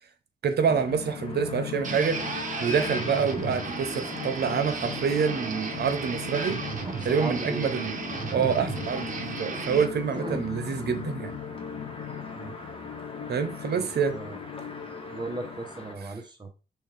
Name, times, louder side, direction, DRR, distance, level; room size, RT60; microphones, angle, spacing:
voice 1, 0.4-6.6 7.0-8.0 8.3-11.3 13.3-14.2, right 6 dB, 80° right, 0.8 m, -27 dB
sound 1, 0.7-15.6, left 9 dB, 80° left, 0.5 m, -39 dB
sound 2, 0.7-16.0, left 2 dB, 30° left, 1.1 m, -45 dB
sound 3, 1.8-9.9, right 4 dB, 50° right, 0.9 m, -34 dB
voice 2, 7.1-7.8 9.9-10.4 12.3-12.5 13.7-14.4 15.1-16.5, right 2 dB, 25° right, 0.9 m, -37 dB
6.2 x 2.4 x 3.3 m
wide cardioid pair, 95°, 17 cm